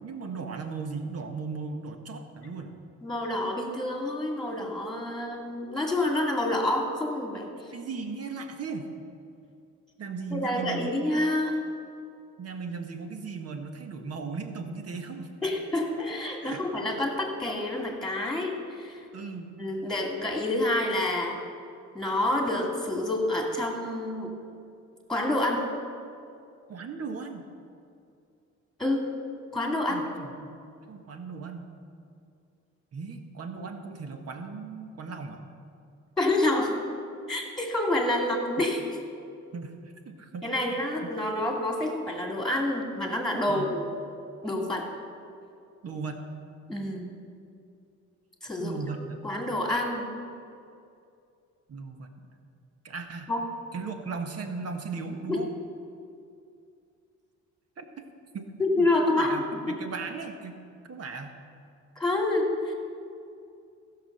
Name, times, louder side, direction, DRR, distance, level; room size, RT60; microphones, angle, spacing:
voice 1, 0.0-2.7 7.7-8.9 10.0-11.1 12.4-15.3 16.4-16.9 19.1-19.6 26.7-27.4 29.9-31.6 32.9-35.4 39.5-39.8 40.0-40.8 43.5-43.7 45.8-46.2 48.6-49.2 51.7-52.1 52.8-53.3 53.7-55.5 57.8-58.0 58.3-58.5 58.8-60.6 60.9-61.3, right 4 dB, 55° right, 5 dB, 1.4 m, -37 dB
voice 2, 3.0-7.5 10.3-11.6 15.4-19.0 19.6-21.4 21.9-24.3 25.1-25.7 28.8-29.0 29.5-30.1 36.2-36.7 37.3-38.8 40.4-43.9 44.4-44.9 46.7-47.1 48.4-48.8 49.2-50.1 53.3-53.4 55.3-55.4 58.6-59.8 62.0-62.7, left 1 dB, ahead, 1 dB, 2.3 m, -28 dB
14.5 x 6.1 x 6.7 m, 2.5 s
cardioid pair, 90°, 30 cm